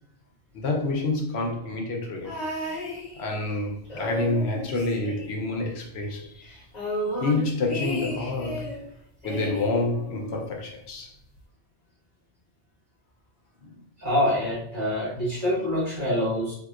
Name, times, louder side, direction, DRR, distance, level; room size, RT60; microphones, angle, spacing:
voice 1, 0.5-2.4 3.2-6.5 7.2-8.7 9.2-11.1 13.6-13.8, left 2 dB, 75° left, 0.9 m, -28 dB
sound 1, 2.2-3.5 3.8-5.8 6.0-6.1 6.4-8.8 9.2-10.5 11.4-11.5, left 1 dB, 40° left, 1.2 m, -34 dB
voice 2, 14.0-16.5, left 1 dB, 45° right, 1.9 m, -25 dB
3.5 x 2.8 x 2.4 m
omnidirectional pair, 1.1 m